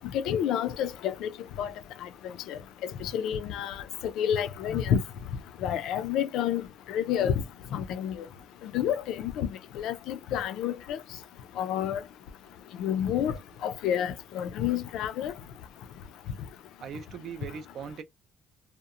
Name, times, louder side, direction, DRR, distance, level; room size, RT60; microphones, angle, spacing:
voice 1, 0.1-1.3 1.6-1.7 2.5-2.6 3.0-3.8 4.2-5.0 5.6-7.4 7.7-8.3 8.6-9.5 9.7-11.0 11.6-12.0 12.8-13.3 13.6-15.3, left 9 dB, 75° left, 0.3 m, -29 dB
voice 2, 16.8-18.0, right 7 dB, 45° right, 0.4 m, -40 dB
2.8 x 2.0 x 2.4 m
cardioid pair, 180°, 0 cm